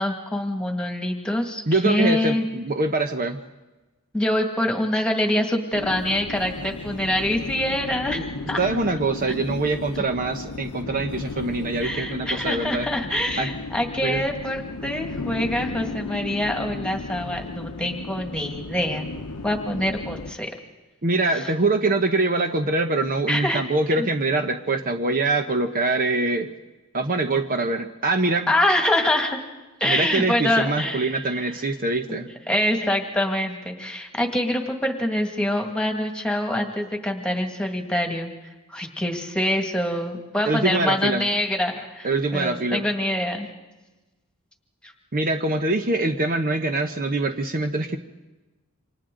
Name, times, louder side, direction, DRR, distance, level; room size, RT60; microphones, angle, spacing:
voice 1, 0.0-2.5 4.1-8.6 11.8-19.1 19.4-20.5 21.3-21.5 23.3-23.6 24.0-24.1 28.5-29.4 29.8-31.2 32.1-32.2 32.5-38.3 38.7-43.5, left 1 dB, 5° left, 3 dB, 2.0 m, -25 dB
voice 2, 1.7-3.4 8.1-8.2 8.6-12.9 13.4-13.5 14.0-14.2 21.0-26.5 26.9-28.5 29.8-32.3 40.4-41.3 42.0-42.9 45.1-48.0, right 2 dB, 40° right, 6 dB, 0.9 m, -24 dB
sound 1, 5.7-20.3, left 3 dB, 85° left, 0.9 m, -35 dB
28.5 x 25.5 x 3.9 m, 1.1 s
head